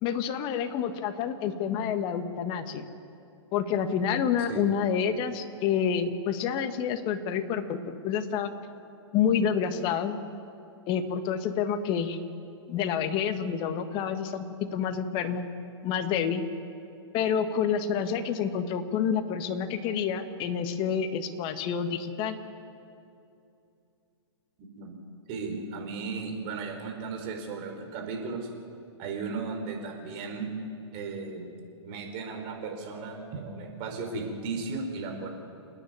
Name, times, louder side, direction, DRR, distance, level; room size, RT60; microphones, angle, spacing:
voice 1, 0.0-2.8 3.5-8.5 9.1-10.2 10.9-12.2 12.7-14.4 14.7-15.4 15.8-16.4 17.1-22.4, left 7 dB, 35° left, 8 dB, 1.7 m, -28 dB
voice 2, 24.6-24.9 25.3-28.5 29.0-30.5 30.9-31.5 31.8-35.3, right 4 dB, 40° right, 3 dB, 5.1 m, -35 dB
29.0 x 9.9 x 9.6 m, 2.6 s
hypercardioid pair, 130°, 15 cm